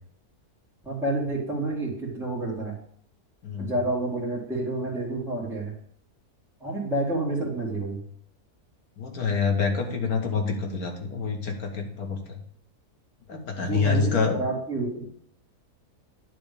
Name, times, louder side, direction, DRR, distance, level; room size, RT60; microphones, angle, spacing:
voice 1, 0.8-2.7 3.6-5.7 6.6-8.0 13.3-15.1, right 2 dB, ahead, -6 dB, 1.9 m, -29 dB
voice 2, 9.0-12.4 13.3-14.4, left 5 dB, 70° left, 2 dB, 1.8 m, -27 dB
9.6 x 3.4 x 6.7 m, 0.66 s
omnidirectional pair, 1.7 m